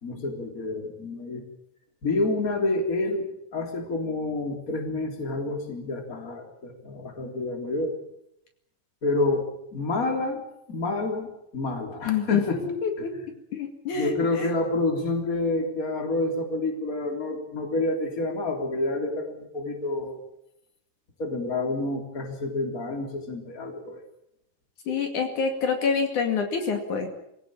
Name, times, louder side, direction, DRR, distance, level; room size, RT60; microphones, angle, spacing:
voice 1, 0.0-1.5 2.0-7.9 9.0-10.4 10.7-12.6 13.0-13.1 13.9-20.2 21.2-24.0, left 2 dB, 25° left, 3 dB, 3.6 m, -28 dB
voice 2, 12.1-13.2 13.5-14.5 24.9-27.1, left 5 dB, 65° left, 4 dB, 3.7 m, -27 dB
24.5 x 17.0 x 8.9 m, 0.79 s
omnidirectional pair, 3.9 m